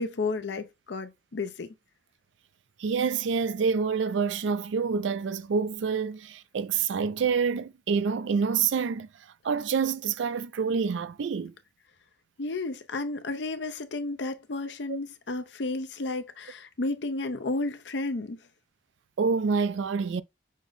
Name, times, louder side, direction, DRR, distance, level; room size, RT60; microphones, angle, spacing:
voice 1, 0.0-1.7 12.4-18.4, left 3 dB, 75° left, 0.6 m, -32 dB
voice 2, 2.8-9.1 9.4-11.5 14.9-15.0 19.2-20.2, right 5 dB, 85° right, 0.4 m, -27 dB
6.2 x 2.1 x 3.9 m
head